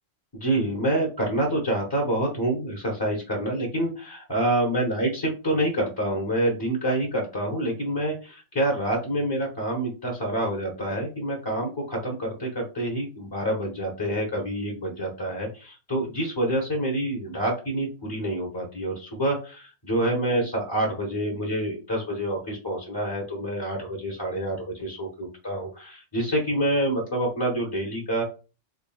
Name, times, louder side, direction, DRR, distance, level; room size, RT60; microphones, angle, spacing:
voice 1, 0.3-28.2, right 1 dB, 20° left, -1 dB, 0.7 m, -27 dB
3.7 x 3.6 x 2.2 m, 0.33 s
omnidirectional pair, 1.3 m